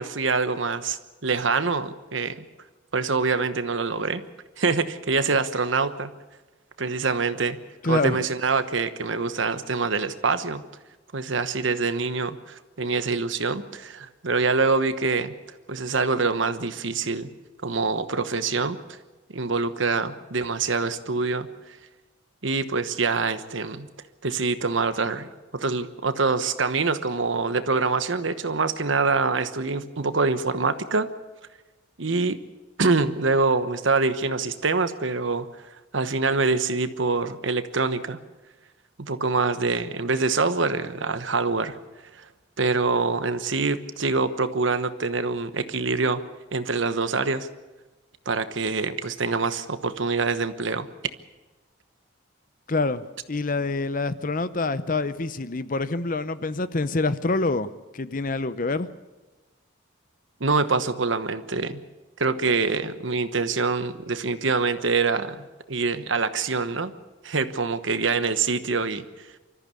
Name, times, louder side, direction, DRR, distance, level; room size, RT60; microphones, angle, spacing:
voice 1, 0.0-2.5 2.9-4.2 4.6-6.1 6.8-7.6 7.8-10.6 11.1-15.3 15.7-17.3 17.6-18.8 19.3-21.5 22.4-23.9 24.2-31.1 32.0-32.4 32.8-35.5 35.9-38.2 39.0-41.8 42.6-46.2 46.5-47.5 48.3-50.9 60.4-61.8 62.2-66.9 67.2-69.0, right 4 dB, 70° right, 1.1 m, -25 dB
voice 2, 7.8-8.2 52.7-58.9, left 3 dB, 40° left, 0.7 m, -26 dB
25.0 x 14.0 x 8.4 m
head